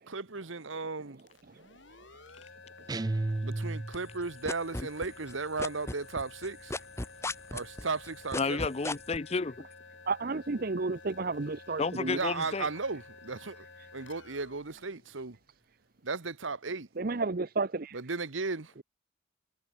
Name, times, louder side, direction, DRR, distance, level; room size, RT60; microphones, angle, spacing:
voice 1, 0.1-1.2 3.4-6.7 7.5-8.6 12.1-13.7 13.9-15.4 16.0-16.9 17.9-18.7, right 4 dB, 75° right, 1.4 m, -35 dB
sound 1, 1.2-15.8, left 3 dB, 65° left, 5.3 m, -52 dB
sound 2, 2.9-4.3, right 2 dB, 20° right, 0.4 m, -33 dB
sound 3, 3.9-5.3 5.6-9.2, left 2 dB, 15° left, 1.7 m, -35 dB
voice 2, 8.4-9.6 11.8-12.7, left 4 dB, 30° left, 0.5 m, -31 dB
voice 3, 10.1-12.2 17.0-18.0, right 3 dB, 45° right, 0.7 m, -32 dB
head